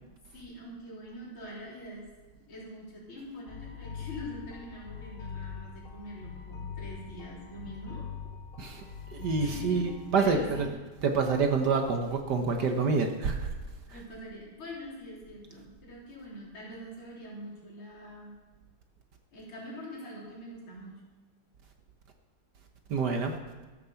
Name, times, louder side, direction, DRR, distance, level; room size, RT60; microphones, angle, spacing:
voice 1, 0.3-2.1 2.5-8.0 9.4-9.9 10.1-10.6 13.9-18.4 19.3-21.0, equal, 70° left, -5 dB, 4.3 m, -44 dB
sound 1, 3.5-10.7, left 7 dB, 90° left, 0.4 m, -42 dB
voice 2, 9.1-10.7 11.0-13.5 22.9-23.3, right 4 dB, 55° right, 4 dB, 1.5 m, -27 dB
14.0 x 6.8 x 7.0 m, 1.2 s
omnidirectional pair, 2.3 m